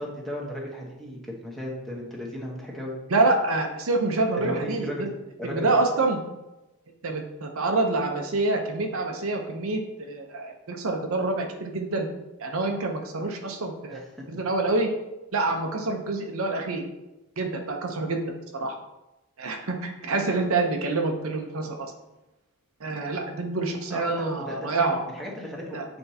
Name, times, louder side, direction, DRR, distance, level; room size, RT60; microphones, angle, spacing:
voice 1, 0.0-2.9 4.4-5.1 5.4-5.7 13.9-14.3 23.9-25.8, left 1 dB, ahead, -4 dB, 1.1 m, -35 dB
voice 2, 3.1-5.1 5.4-6.2 7.0-12.1 12.4-14.9 15.3-16.8 17.4-18.2 18.5-18.7 19.4-21.9 22.8-25.0 25.7-25.8, right 3 dB, 70° right, 3 dB, 0.8 m, -27 dB
7.9 x 4.4 x 2.8 m, 0.99 s
head